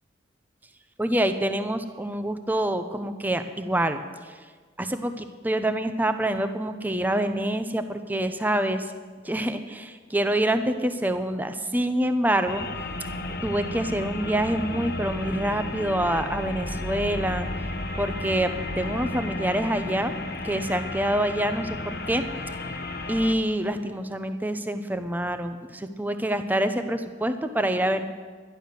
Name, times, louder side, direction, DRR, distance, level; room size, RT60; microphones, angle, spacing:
voice 1, 1.0-4.0 4.2-4.3 4.8-8.9 9.2-12.7 13.4-17.5 18.0-20.1 20.4-22.2 23.1-28.0, right 1 dB, 10° right, 8 dB, 0.7 m, -26 dB
sound 1, 12.5-23.3, left 2 dB, 55° left, 0.9 m, -33 dB
12.0 x 11.5 x 6.6 m, 1.5 s
head